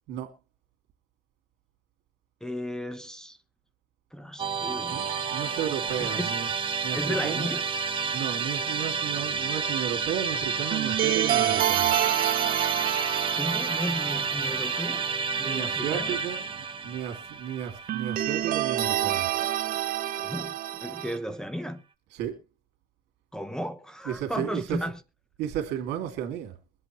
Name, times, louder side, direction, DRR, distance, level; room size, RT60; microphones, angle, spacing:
voice 1, 2.4-3.4 4.1-5.0 6.0-6.3 6.9-7.6 13.3-15.1 15.4-16.2 20.2-21.8 23.3-25.0, equal, 5° left, 0.9 m, -34 dB
Musical instrument, 4.4-19.6, right 5 dB, 30° right, 1.0 m, -30 dB
sound 1, 4.9-6.7 10.7-15.1 15.4-15.5 17.9-21.2, right 12 dB, 55° right, 0.7 m, -29 dB
voice 2, 4.9-6.5 6.8-7.5 8.1-11.9 15.4-19.3 22.1-22.4 24.0-24.8 25.4-26.6, right 10 dB, 85° right, 2.4 m, -33 dB
22.5 x 8.1 x 3.1 m
cardioid pair, 110°, 17 cm